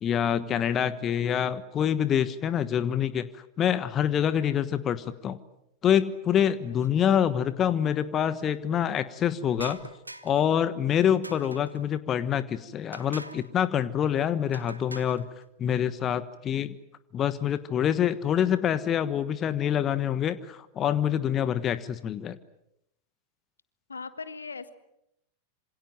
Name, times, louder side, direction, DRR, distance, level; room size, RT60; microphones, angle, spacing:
voice 1, 0.0-3.3 3.6-5.4 5.8-9.8 10.2-15.3 15.6-16.7 17.1-22.4, left 9 dB, 30° left, 14 dB, 1.3 m, -26 dB
sound 1, 9.6-10.5 11.2-11.9 12.9-13.5 14.5-15.3, right 1 dB, 85° right, 1.3 m, -43 dB
voice 2, 23.9-24.7, left 4 dB, 75° left, 12 dB, 1.8 m, -40 dB
27.0 x 26.5 x 7.8 m, 0.80 s
figure-of-eight pair, 90°, 0 cm